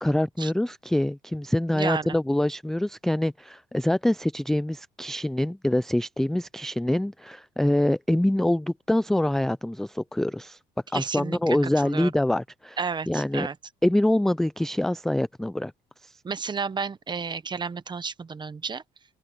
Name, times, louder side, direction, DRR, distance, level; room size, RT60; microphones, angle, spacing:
voice 1, 0.0-10.6 10.9-12.8 13.1-13.5 13.8-15.7 16.0-16.1, left 1 dB, ahead, 0.3 m, -25 dB
voice 2, 1.7-2.2 10.9-11.6 11.8-12.1 12.8-13.5 16.2-18.8, right 5 dB, 25° right, 1.1 m, -31 dB
open air
cardioid pair, 110°, 17 cm